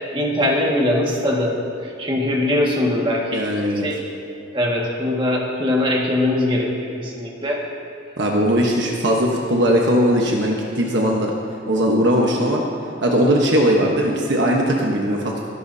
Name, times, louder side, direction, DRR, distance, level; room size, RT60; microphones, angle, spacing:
voice 1, 0.1-3.5 3.8-4.0 4.5-7.6, left 1 dB, 25° right, -3 dB, 1.9 m, -21 dB
voice 2, 3.3-3.9 8.2-11.3 11.7-12.6 13.0-15.5, equal, 60° right, -1 dB, 1.2 m, -19 dB
22.5 x 11.5 x 2.8 m, 2.7 s
head